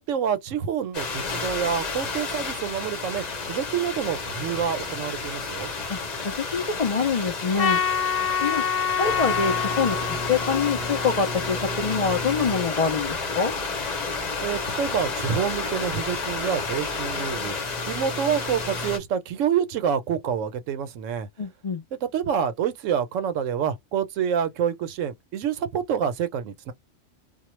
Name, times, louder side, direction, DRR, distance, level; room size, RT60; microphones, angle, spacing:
voice 1, 0.0-5.7 14.4-21.3 22.0-26.7, right 8 dB, 85° right, 1.0 m, -27 dB
sound 1, 0.9-19.0, left 3 dB, 40° left, 0.8 m, -31 dB
voice 2, 6.2-7.8 8.4-8.6 9.0-13.5 21.4-21.8, left 5 dB, 65° left, 0.3 m, -25 dB
Trumpet, 7.6-12.0, left 8 dB, 80° left, 1.2 m, -27 dB
2.4 x 2.1 x 3.0 m
omnidirectional pair, 1.3 m